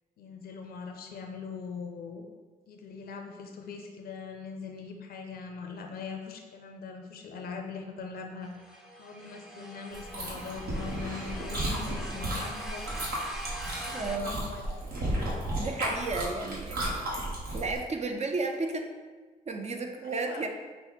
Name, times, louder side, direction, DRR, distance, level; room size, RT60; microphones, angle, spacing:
voice 1, 0.2-2.2 2.7-8.5 9.0-12.9 13.9-14.6 20.0-20.5, left 5 dB, 80° left, 4 dB, 0.6 m, -41 dB
sound 1, 8.4-14.2, right 1 dB, 5° right, 0.7 m, -43 dB
Chewing mastication, 9.9-17.8, right 1 dB, 75° right, 1.3 m, -34 dB
voice 2, 13.9-14.4 15.6-17.0 17.5-18.9 19.5-20.5, right 3 dB, 45° right, 4 dB, 0.6 m, -33 dB
5.6 x 2.1 x 4.0 m, 1.4 s
cardioid pair, 70°, 15 cm